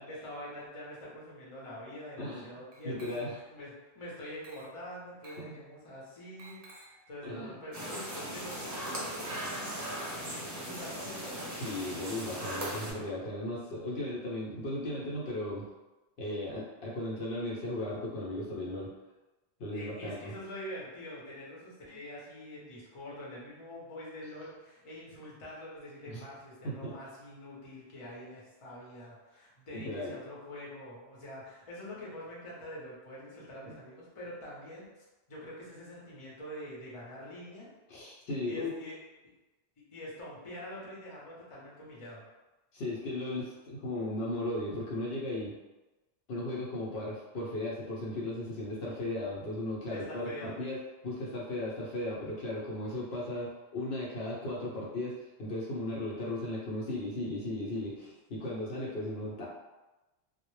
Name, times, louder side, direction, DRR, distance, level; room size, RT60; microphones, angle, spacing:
voice 1, 0.0-11.5 19.7-34.8 35.3-37.7 38.4-39.0 39.9-42.2 49.9-50.6, left 1 dB, 35° left, -6 dB, 0.7 m, -45 dB
Glass, 2.7-3.6 4.4-4.8 5.2-5.5 6.4-7.0 8.4-10.5, right 1 dB, 65° right, 0.7 m, -53 dB
voice 2, 2.8-3.3 5.2-5.6 7.2-7.6 11.6-15.7 16.2-18.9 19.6-20.3 26.1-26.2 26.6-26.9 29.7-30.2 37.9-38.7 42.7-45.5 46.3-59.5, left 1 dB, 75° left, -5 dB, 0.8 m, -36 dB
sound 1, 7.7-12.9, right 1 dB, 25° right, 0.4 m, -38 dB
2.0 x 2.0 x 3.0 m, 1.1 s
omnidirectional pair, 1.1 m